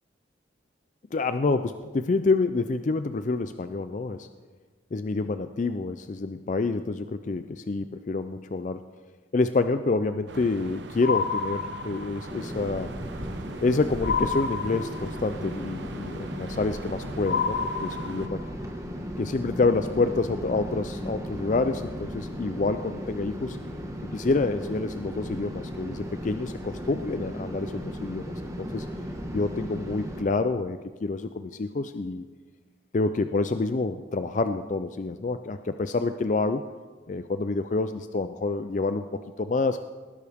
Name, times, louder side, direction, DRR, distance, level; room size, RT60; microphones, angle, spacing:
voice 1, 1.1-4.3 4.9-8.8 9.3-13.0 13.6-18.4 19.2-23.6 24.1-28.9 29.3-32.2 32.9-36.6 37.1-39.8, left 3 dB, 40° left, 10 dB, 0.4 m, -27 dB
sound 1, 10.3-18.3, right 2 dB, 70° right, 0.8 m, -41 dB
sound 2, 11.0-12.3 14.0-15.3 17.3-18.5, left 5 dB, 55° left, 1.2 m, -29 dB
sound 3, 12.2-30.2, equal, 15° right, 1.4 m, -36 dB
19.0 x 11.0 x 3.5 m, 1.4 s
head